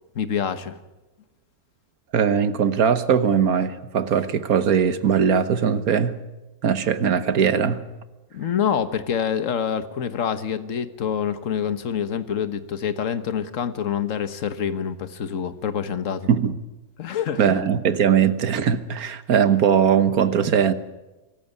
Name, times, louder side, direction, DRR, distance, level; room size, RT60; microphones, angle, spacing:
voice 1, 0.1-0.8 8.3-16.3 17.0-17.6, left 8 dB, 60° left, 1.5 m, -26 dB
voice 2, 2.1-6.2 6.6-7.8 16.3-16.5 17.4-20.7, right 7 dB, 75° right, 1.7 m, -20 dB
24.0 x 14.5 x 9.5 m
omnidirectional pair, 1.5 m